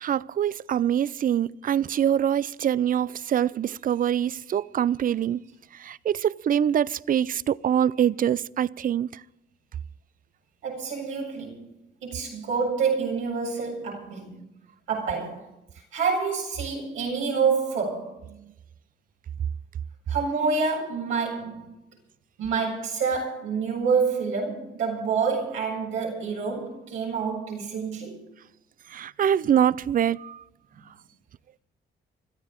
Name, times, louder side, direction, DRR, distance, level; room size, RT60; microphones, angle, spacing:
voice 1, 0.0-5.4 5.8-9.2 28.9-30.4, right 9 dB, 45° right, 0.4 m, -24 dB
voice 2, 10.6-11.7 12.0-14.4 14.9-15.5 15.9-18.2 20.1-21.7 22.4-28.2, right 5 dB, 90° right, 7.6 m, -27 dB
25.0 x 13.5 x 3.7 m
cardioid pair, 90°, 20 cm